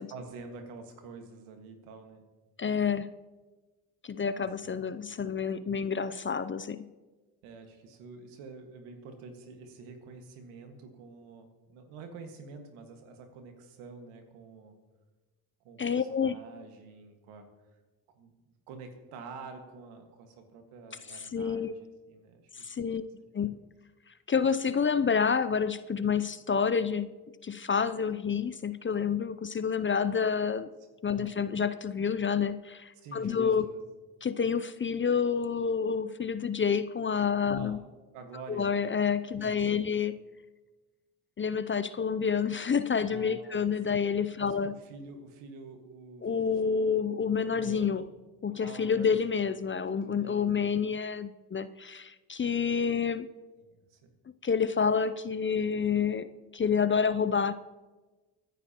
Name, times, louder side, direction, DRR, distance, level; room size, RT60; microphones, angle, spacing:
voice 1, 0.1-2.2 4.4-4.8 7.4-14.8 15.6-17.5 18.1-18.3 18.7-23.1 23.5-23.7 31.1-31.3 33.0-33.8 37.5-37.8 38.1-38.7 39.3-39.9 43.0-44.0 44.4-46.3 47.4-48.0 48.5-49.4 49.9-50.7 53.6-54.1, right 4 dB, 80° right, 5 dB, 1.8 m, -48 dB
voice 2, 2.6-3.1 4.0-6.9 15.8-16.3 21.3-21.7 22.6-23.0 23.3-23.6 24.3-27.1 27.4-30.7 31.0-33.7 34.2-37.8 38.5-40.1 41.4-44.7 46.2-48.1 48.4-53.3 54.4-57.5, left 6 dB, 25° left, 14 dB, 0.5 m, -28 dB
24.0 x 10.0 x 3.0 m, 1.2 s
hypercardioid pair, 55°, 49 cm